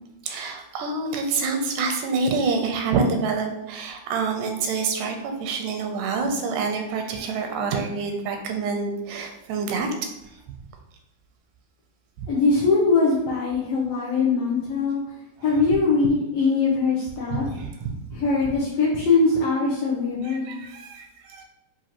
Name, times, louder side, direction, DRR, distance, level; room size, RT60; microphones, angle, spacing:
voice 1, 0.2-9.9 17.4-17.9 20.2-21.4, right 4 dB, 85° right, 4 dB, 2.2 m, -27 dB
voice 2, 12.3-15.0 15.4-17.5 18.1-20.5, left 4 dB, 90° left, -5 dB, 1.3 m, -22 dB
6.0 x 2.6 x 2.9 m, 0.87 s
omnidirectional pair, 3.7 m